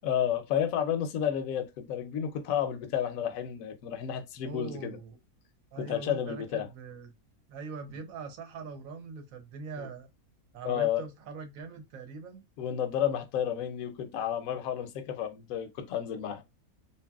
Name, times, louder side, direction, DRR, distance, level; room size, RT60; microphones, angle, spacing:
voice 1, 0.0-5.0 5.8-6.7 9.8-9.9 10.6-11.0 12.6-16.4, left 9 dB, 75° left, 1.0 m, -31 dB
voice 2, 4.4-5.2 5.7-7.1 7.5-10.1 10.5-12.4, right 4 dB, 75° right, 1.2 m, -42 dB
2.8 x 2.6 x 2.3 m
omnidirectional pair, 1.5 m